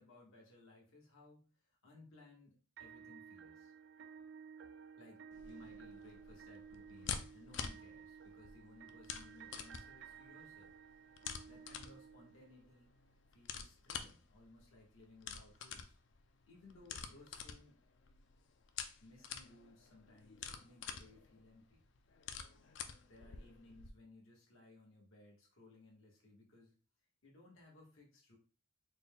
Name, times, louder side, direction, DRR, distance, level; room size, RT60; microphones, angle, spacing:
voice 1, 0.0-3.7 5.0-10.7 11.5-12.9 13.3-16.0 16.4-17.8 19.0-21.8 23.1-26.8 27.2-28.4, left 2 dB, 85° left, -1 dB, 1.3 m, -61 dB
sound 1, 2.8-12.8, right 7 dB, 60° right, 0.3 m, -55 dB
sound 2, 5.3-23.9, left 7 dB, 65° left, 0.4 m, -49 dB
4.2 x 2.2 x 3.5 m, 0.36 s
head